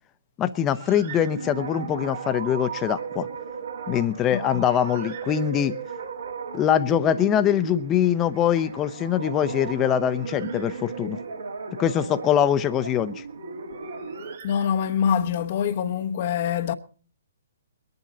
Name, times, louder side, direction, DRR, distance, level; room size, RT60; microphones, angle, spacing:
voice 1, 0.4-3.3 3.9-5.7 6.5-11.2 11.8-13.2, left 10 dB, 20° left, 0.8 m, -23 dB
Bird, 0.7-1.9 3.9-6.0 9.4-11.3 13.3-15.2, right 8 dB, 50° right, 2.5 m, -47 dB
sound 1, 0.9-14.4, right 5 dB, 70° right, 2.7 m, -36 dB
voice 2, 4.3-4.6 14.4-16.7, left 8 dB, 45° left, 1.0 m, -25 dB
22.0 x 10.5 x 4.0 m
figure-of-eight pair, 130°, 0 cm